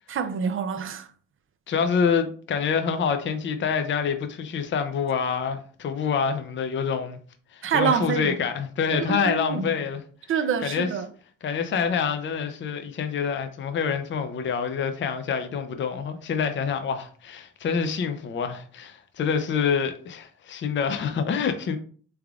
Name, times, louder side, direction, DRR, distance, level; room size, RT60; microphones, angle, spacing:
voice 1, 0.1-1.1 7.6-8.4 9.0-9.8 10.3-11.1, right 7 dB, 45° right, 0.5 m, -26 dB
voice 2, 1.7-7.2 7.5-10.0 10.6-10.9 11.4-21.8, left 6 dB, 40° left, 0.5 m, -26 dB
3.5 x 3.4 x 2.4 m
cardioid pair, 90°, 30 cm